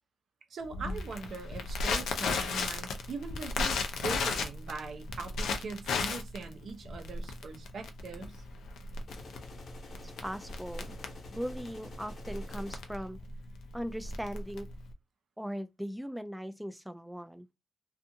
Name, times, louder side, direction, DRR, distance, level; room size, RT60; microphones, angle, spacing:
voice 1, 0.5-8.4, right 4 dB, 70° right, 0.6 m, -41 dB
Crackle, 0.7-14.9, left 4 dB, 90° left, 0.4 m, -35 dB
sound 1, 9.1-13.1, left 3 dB, 65° left, 0.9 m, -50 dB
voice 2, 10.0-11.0 11.3-13.2 13.7-14.7 15.4-17.5, equal, 5° right, 0.3 m, -39 dB
2.6 x 2.4 x 2.7 m
cardioid pair, 65°, 0 cm